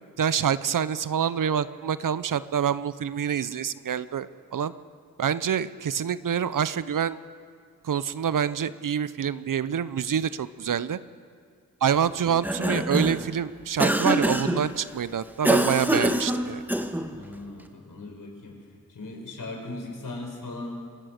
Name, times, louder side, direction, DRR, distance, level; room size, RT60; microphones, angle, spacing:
voice 1, 0.2-4.7 5.2-7.2 7.8-11.0 11.8-16.6, right 8 dB, 65° right, 15 dB, 0.8 m, -26 dB
Cough, 12.3-13.3 13.8-14.6 15.4-17.1, equal, 5° right, 1.9 m, -24 dB
voice 2, 17.1-18.6 18.9-20.7, left 2 dB, 65° left, 1 dB, 5.8 m, -38 dB
27.0 x 16.5 x 6.6 m, 2.2 s
cardioid pair, 45°, 34 cm